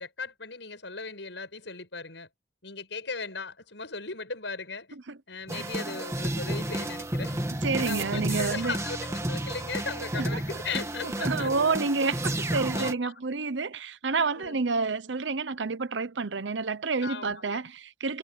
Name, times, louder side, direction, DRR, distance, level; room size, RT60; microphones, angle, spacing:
voice 1, 0.0-2.3 2.6-5.0 5.3-7.4 7.8-11.6 12.7-13.1 14.3-14.6 17.0-17.6, left 4 dB, 75° left, 7.2 m, -37 dB
sound 1, 5.5-12.9, right 1 dB, 15° right, 2.0 m, -32 dB
voice 2, 7.6-8.8 10.2-10.6 11.0-18.2, right 4 dB, 80° right, 0.9 m, -29 dB
head